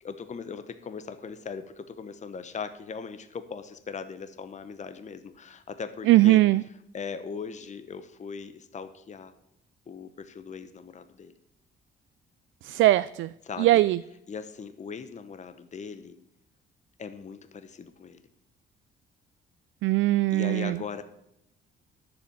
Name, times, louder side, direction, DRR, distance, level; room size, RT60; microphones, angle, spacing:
voice 1, 0.0-6.4 6.9-9.3 9.9-11.3 13.4-13.8 14.3-16.2 17.0-18.2 20.3-21.0, left 5 dB, 35° left, 10 dB, 0.9 m, -39 dB
voice 2, 6.1-6.6 12.6-13.3 13.6-14.0 19.8-20.8, right 16 dB, 75° right, 16 dB, 0.4 m, -20 dB
10.5 x 7.2 x 8.6 m, 0.80 s
cardioid pair, 90°, 20 cm